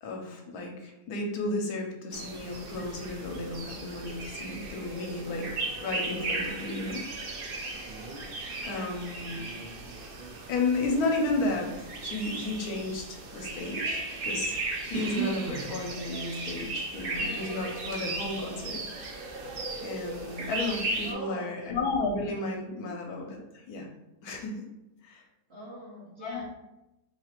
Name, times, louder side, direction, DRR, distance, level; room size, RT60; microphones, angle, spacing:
voice 1, 0.0-7.1 8.6-9.4 10.5-18.8 19.8-23.9 24.2-24.6 25.0-25.2 26.2-26.5, left 2 dB, 75° left, 1 dB, 1.1 m, -33 dB
sound 1, 2.1-21.1, right 3 dB, 80° right, 0.5 m, -36 dB
voice 2, 8.6-9.0 21.0-21.6 25.5-26.5, right 2 dB, 50° right, -5 dB, 0.8 m, -42 dB
3.0 x 2.4 x 4.2 m, 0.95 s
omnidirectional pair, 1.7 m